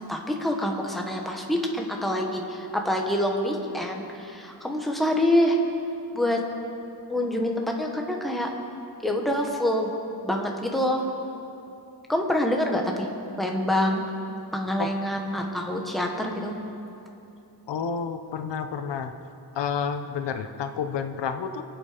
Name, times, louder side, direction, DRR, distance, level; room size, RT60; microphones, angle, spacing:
voice 1, 0.0-5.6 6.1-6.4 7.1-8.5 9.0-9.9 10.2-11.0 12.1-13.1 13.4-14.0 14.5-16.5, left 1 dB, ahead, 1 dB, 1.3 m, -26 dB
voice 2, 17.7-19.1 19.5-21.6, left 6 dB, 90° left, 8 dB, 1.0 m, -30 dB
24.5 x 8.2 x 5.1 m, 2.8 s
wide cardioid pair, 170°, 41 cm